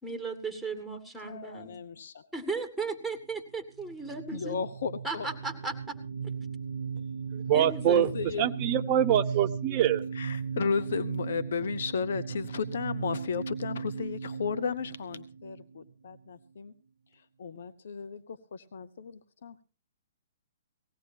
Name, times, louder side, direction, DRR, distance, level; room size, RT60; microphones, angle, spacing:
voice 1, 0.0-1.7 2.3-4.6 5.0-6.0 7.5-8.1, right 4 dB, ahead, 5 dB, 2.3 m, -36 dB
voice 2, 1.2-2.3 4.3-5.3 7.8-8.5 10.1-16.7 17.4-19.6, left 5 dB, 65° left, 13 dB, 0.9 m, -34 dB
sound 1, 3.7-16.2, right 6 dB, 90° right, 0.7 m, -37 dB
voice 3, 7.3-8.1 8.4-10.0, right 10 dB, 35° right, 9 dB, 1.0 m, -25 dB
19.5 x 16.5 x 2.8 m, 0.32 s
hypercardioid pair, 130°, 0 cm